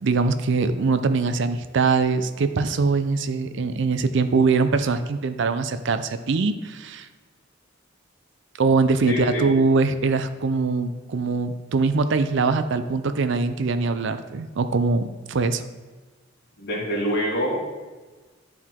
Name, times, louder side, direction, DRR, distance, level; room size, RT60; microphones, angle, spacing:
voice 1, 0.0-7.1 8.6-15.0 15.3-15.6, right 4 dB, 65° right, 10 dB, 0.5 m, -22 dB
voice 2, 9.1-9.5 16.6-17.6, equal, 55° left, -4 dB, 2.2 m, -25 dB
11.5 x 4.6 x 3.7 m, 1.3 s
head